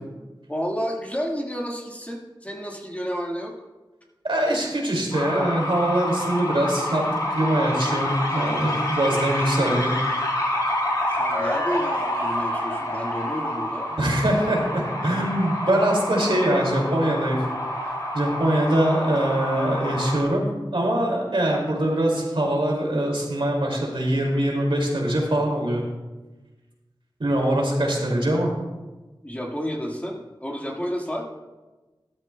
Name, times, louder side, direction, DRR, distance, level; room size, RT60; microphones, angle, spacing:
voice 1, 0.5-3.5 11.1-14.0 29.2-31.2, equal, 15° left, -1 dB, 1.7 m, -31 dB
voice 2, 4.2-9.9 14.0-17.4 18.1-20.4 20.7-25.8 27.2-28.5, right 1 dB, 75° right, -1 dB, 2.4 m, -23 dB
sound 1, 5.1-20.2, left 1 dB, 50° left, 2.9 m, -28 dB
13.0 x 12.5 x 2.2 m, 1.2 s
wide cardioid pair, 55°, 9 cm